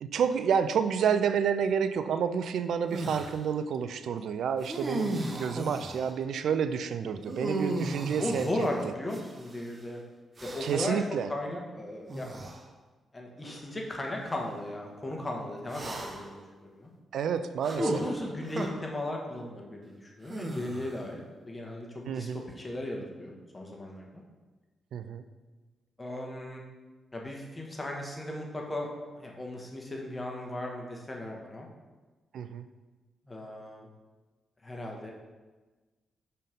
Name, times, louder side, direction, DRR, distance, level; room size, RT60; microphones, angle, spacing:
voice 1, 0.0-8.5 10.6-11.3 17.1-18.0 22.1-22.4 24.9-25.2 32.3-32.7, right 7 dB, 70° right, 11 dB, 0.4 m, -29 dB
sound 1, 2.9-3.4 4.6-6.1 7.3-9.6 10.4-11.0 12.1-12.6 13.4-13.6 15.7-16.4 17.6-18.7 20.3-21.1, right 2 dB, 40° right, 0.9 m, -36 dB
voice 2, 8.2-10.0 10.4-12.4 13.1-16.9 17.7-22.3 22.6-24.1 26.0-26.6 27.1-31.7 33.3-33.9 34.6-35.1, left 1 dB, 25° left, 0 dB, 1.5 m, -36 dB
5.3 x 4.3 x 5.2 m, 1.3 s
hypercardioid pair, 40°, 0 cm